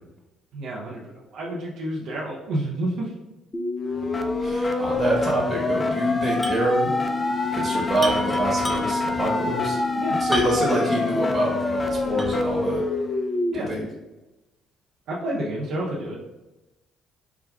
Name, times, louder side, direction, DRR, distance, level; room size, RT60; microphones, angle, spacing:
voice 1, 0.5-1.0 1.3-3.1 10.0-10.2 13.5-13.7 15.1-16.3, right 1 dB, 65° right, -4 dB, 0.6 m, -29 dB
sound 1, 3.5-13.5, left 2 dB, 30° left, 0.4 m, -25 dB
voice 2, 4.4-6.9 7.5-9.8 10.2-12.8 13.5-13.8, right 1 dB, 30° right, -3 dB, 1.0 m, -26 dB
sound 2, 6.4-6.7 7.0-7.1 8.0-9.1 10.3-10.8 11.3-11.4 12.2-12.6, equal, ahead, 0.7 m, -31 dB
4.7 x 2.2 x 2.3 m, 1.0 s
hypercardioid pair, 50°, 0 cm